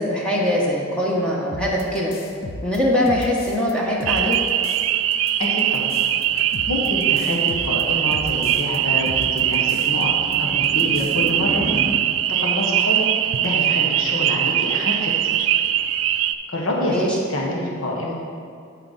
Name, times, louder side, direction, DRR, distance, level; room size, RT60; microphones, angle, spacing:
voice 1, 0.0-2.1 2.6-4.4 16.8-17.2, left 1 dB, 5° left, -4 dB, 1.0 m, -22 dB
sound 1, 1.5-3.7 4.0-4.9 5.1-8.8 9.1-10.0 10.3-10.4 10.6-11.3, left 1 dB, 50° left, 0.6 m, -36 dB
sound 2, 4.1-16.3, right 11 dB, 70° right, 0.3 m, -21 dB
voice 2, 5.4-6.0 6.7-10.1 10.4-11.6 12.3-15.5 16.5-18.1, left 1 dB, 85° left, -2 dB, 1.3 m, -27 dB
sound 3, 5.4-11.9, right 1 dB, 20° right, 1.1 m, -35 dB
11.5 x 4.6 x 4.1 m, 2.4 s
head